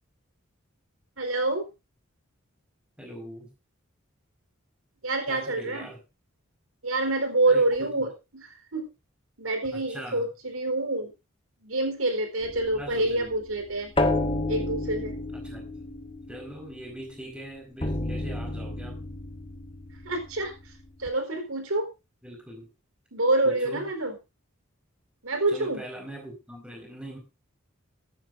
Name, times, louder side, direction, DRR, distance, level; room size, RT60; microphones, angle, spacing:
voice 1, 1.2-1.6 5.0-5.9 6.8-8.9 9.4-11.1 11.6-13.9 14.5-15.2 20.0-20.5 21.0-21.9 23.1-24.1 25.2-25.8, right 2 dB, 85° right, 5 dB, 4.2 m, -27 dB
voice 2, 3.0-3.5 5.3-6.0 7.5-7.9 9.7-10.3 12.7-13.3 15.3-15.7 16.3-19.0 22.2-22.7 23.4-23.9 25.5-27.2, right 1 dB, 5° right, 2 dB, 4.7 m, -41 dB
sound 1, 12.4-17.2 17.8-21.1, left 2 dB, 25° left, 1.2 m, -32 dB
15.0 x 14.0 x 2.6 m, 0.27 s
head